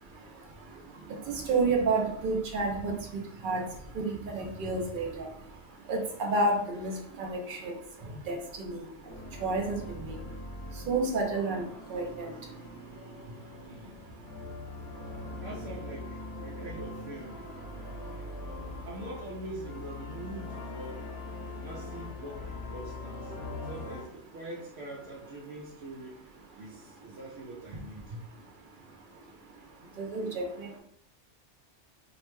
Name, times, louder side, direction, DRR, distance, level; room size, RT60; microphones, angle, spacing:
voice 1, 1.3-3.0 3.4-3.6 4.0-5.3 5.9-6.9 7.2-7.7 8.3-8.8 9.4-10.2 10.9-11.6 11.9-12.3 30.0-30.4, right 3 dB, 55° right, 1 dB, 0.6 m, -29 dB
sound 1, 9.1-24.0, left 2 dB, 65° left, 0.9 m, -42 dB
voice 2, 13.6-14.0 15.4-17.4 18.9-21.1 21.6-23.3 23.6-26.3 26.5-28.2, right 1 dB, 90° right, -5 dB, 0.9 m, -43 dB
2.6 x 2.1 x 3.0 m, 0.70 s
omnidirectional pair, 1.2 m